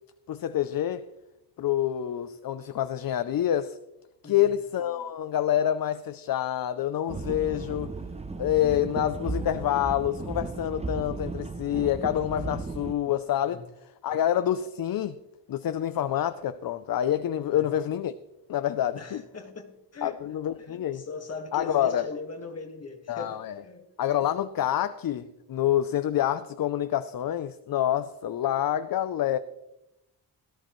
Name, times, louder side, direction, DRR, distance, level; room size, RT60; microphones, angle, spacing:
voice 1, 0.3-1.0 1.6-3.8 4.2-7.9 8.4-13.6 14.0-15.2 15.5-18.1 18.5-19.2 20.0-21.0 21.5-22.1 23.1-23.6 24.0-29.4, left 11 dB, 55° left, 0.5 m, -27 dB
voice 2, 4.2-4.6 13.5-13.6 17.5-17.7 19.0-20.2 20.6-23.9, left 4 dB, 35° left, 1.7 m, -40 dB
sound 1, 7.1-12.9, right 3 dB, 15° right, 0.5 m, -35 dB
18.0 x 13.5 x 3.1 m
wide cardioid pair, 175°, 43 cm